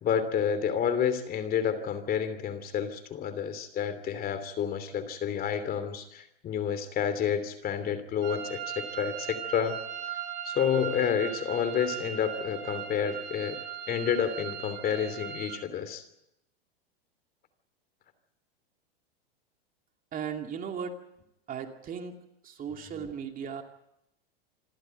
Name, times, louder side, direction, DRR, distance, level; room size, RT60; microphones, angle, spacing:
voice 1, 0.0-9.8 10.4-13.6 13.9-16.0 23.0-23.1, left 8 dB, 30° left, 11 dB, 3.0 m, -29 dB
sound 1, 8.2-15.6, right 9 dB, 70° right, 6.6 m, -38 dB
voice 2, 20.1-21.0 21.5-22.2 22.4-23.6, right 7 dB, 30° right, 4 dB, 2.6 m, -36 dB
27.0 x 14.0 x 9.2 m, 0.83 s
hypercardioid pair, 120°, 30 cm